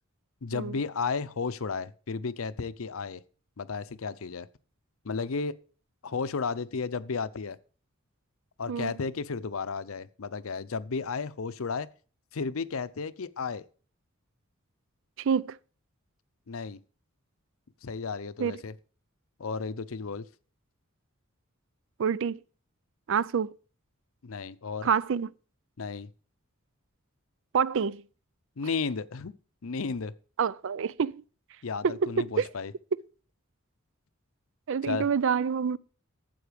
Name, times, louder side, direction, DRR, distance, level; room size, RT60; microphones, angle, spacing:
voice 1, 0.4-3.2 3.6-4.5 5.0-5.5 6.0-7.6 8.6-11.9 12.3-13.6 16.5-16.8 17.8-18.7 19.4-20.3 24.2-24.9 25.8-26.1 28.6-29.3 29.6-30.1 31.6-32.7 34.8-35.1, left 5 dB, 75° left, 0.6 m, -33 dB
voice 2, 15.2-15.6 18.4-18.6 22.0-22.4 23.1-23.5 24.8-25.3 27.5-28.0 30.4-31.2 31.8-32.5 34.7-35.8, right 6 dB, 60° right, 0.4 m, -27 dB
13.0 x 7.8 x 5.1 m
head